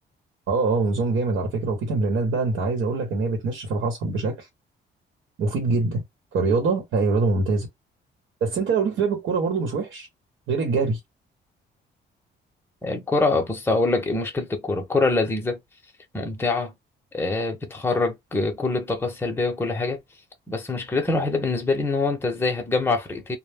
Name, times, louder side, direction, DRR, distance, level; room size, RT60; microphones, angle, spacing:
voice 1, 0.5-4.5 5.4-6.0 6.3-7.7 8.4-10.1 10.5-11.0, right 4 dB, 80° right, 1.0 m, -24 dB
voice 2, 12.8-15.6 16.1-16.7 17.1-20.0 20.5-23.4, left 3 dB, 10° left, 0.8 m, -24 dB
2.2 x 2.1 x 3.4 m
cardioid pair, 90°, 20 cm